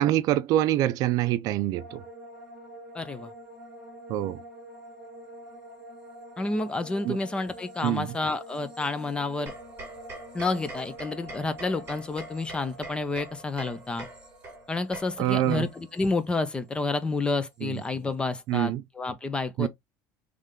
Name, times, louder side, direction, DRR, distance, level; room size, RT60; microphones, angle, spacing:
voice 1, 0.0-2.0 4.1-4.4 7.0-7.2 7.8-8.1 15.2-15.7 17.6-17.8 18.5-18.8 19.6-19.7, right 13 dB, 55° right, 0.4 m, -25 dB
sound 1, 1.7-17.0 17.2-17.9, right 1 dB, 10° right, 1.4 m, -47 dB
voice 2, 2.9-3.3 6.4-9.5 10.3-14.1 14.7-19.7, left 3 dB, 15° left, 0.5 m, -30 dB
sound 2, 9.5-16.0, right 2 dB, 30° right, 2.0 m, -44 dB
3.5 x 3.2 x 3.6 m
cardioid pair, 165°, 7 cm